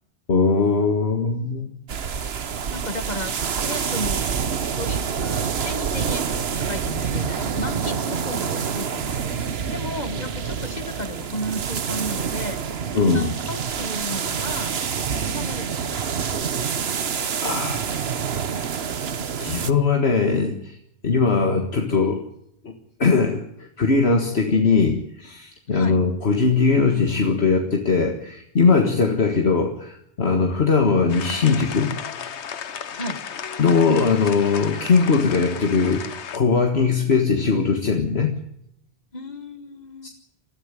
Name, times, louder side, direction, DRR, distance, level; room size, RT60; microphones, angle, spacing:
voice 1, 0.3-1.7 10.1-10.2 13.0-13.3 17.4-18.0 19.4-20.8 21.0-22.2 22.6-22.7 23.0-31.9 33.6-38.3 40.0-40.1, left 4 dB, 70° left, 3 dB, 1.9 m, -20 dB
sound 1, 1.9-19.7, right 6 dB, 65° right, 1.2 m, -27 dB
voice 2, 2.7-3.4 3.6-4.2 4.7-12.6 12.9-14.7 15.4-16.1 17.5-17.8 25.7-26.0 32.9-33.2 39.1-40.1, left 1 dB, 40° left, 10 dB, 1.6 m, -34 dB
sound 2, 31.1-36.4, left 7 dB, 90° left, 1.3 m, -34 dB
21.5 x 13.5 x 9.8 m, 0.76 s
omnidirectional pair, 1.1 m